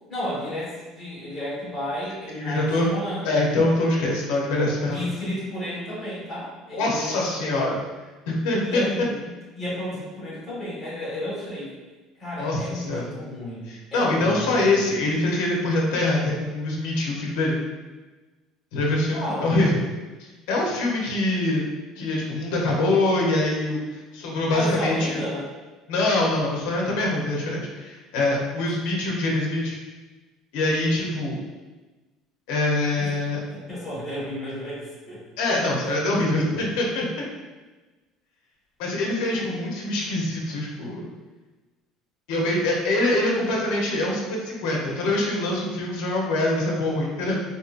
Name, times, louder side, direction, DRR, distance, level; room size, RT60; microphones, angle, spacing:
voice 1, 0.1-3.3 4.9-7.6 8.6-11.7 12.2-15.0 19.1-19.8 24.5-25.5 33.0-35.2 35.6-35.9 39.3-39.5, equal, 10° left, -10 dB, 1.4 m, -33 dB
voice 2, 2.3-2.9 3.2-5.0 6.7-7.8 8.3-8.8 12.4-13.1 13.7-17.6 18.7-19.8 20.5-21.6 22.0-25.2 25.9-29.8 30.5-31.4 32.5-33.4 35.4-37.1 38.8-41.1 42.3-47.4, left 2 dB, 80° left, -2 dB, 0.7 m, -24 dB
3.8 x 2.6 x 2.5 m, 1.2 s
cardioid pair, 165°, 0 cm